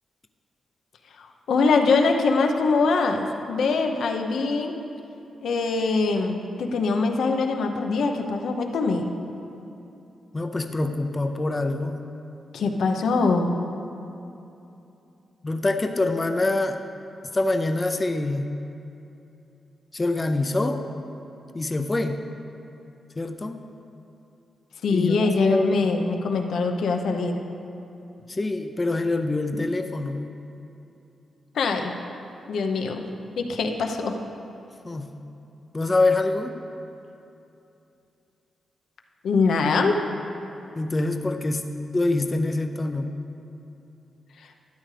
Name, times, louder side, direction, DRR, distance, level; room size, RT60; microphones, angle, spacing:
voice 1, 1.2-4.8 5.4-9.1 12.5-13.5 24.8-27.4 31.5-31.9 32.5-33.0 33.4-34.1 39.2-40.0, left 4 dB, 80° left, 4 dB, 0.8 m, -23 dB
voice 2, 10.3-12.0 15.4-16.8 17.3-18.5 19.9-20.8 21.5-22.2 23.2-23.6 24.9-25.8 28.3-30.3 34.8-35.1 35.7-36.5 40.8-43.1, left 2 dB, 20° left, 6 dB, 0.5 m, -25 dB
12.5 x 10.5 x 3.3 m, 2.8 s
wide cardioid pair, 115°, 0 cm